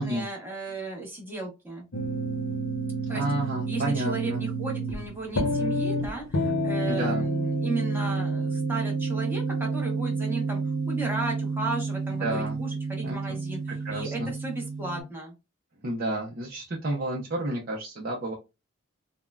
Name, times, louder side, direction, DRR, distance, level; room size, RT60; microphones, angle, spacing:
voice 1, 0.0-1.9 3.1-3.2 3.7-10.6 10.9-15.3, right 3 dB, 10° right, -1 dB, 1.0 m, -35 dB
sound 1, 1.9-15.0, right 2 dB, 75° left, 0.7 m, -29 dB
voice 2, 3.1-4.4 6.9-7.3 12.2-12.6 13.0-13.4 13.8-14.3 15.8-18.3, right 1 dB, 50° right, -3 dB, 0.6 m, -30 dB
3.5 x 2.1 x 2.3 m, 0.26 s
head